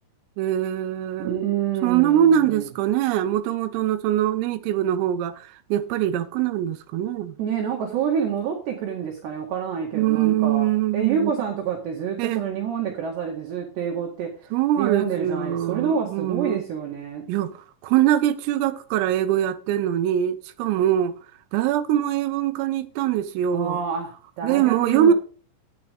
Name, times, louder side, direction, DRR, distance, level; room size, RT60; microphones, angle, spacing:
voice 1, 0.4-1.4 1.8-7.4 9.9-11.3 12.2-12.5 14.5-16.6 17.3-21.2 21.5-23.8 24.4-25.1, right 11 dB, 85° right, 3.5 m, -23 dB
voice 2, 1.2-2.7 7.4-10.7 10.9-14.3 14.8-17.2 23.5-24.1 24.4-25.1, right 7 dB, 60° right, 3.8 m, -27 dB
17.0 x 8.0 x 3.6 m
omnidirectional pair, 6.0 m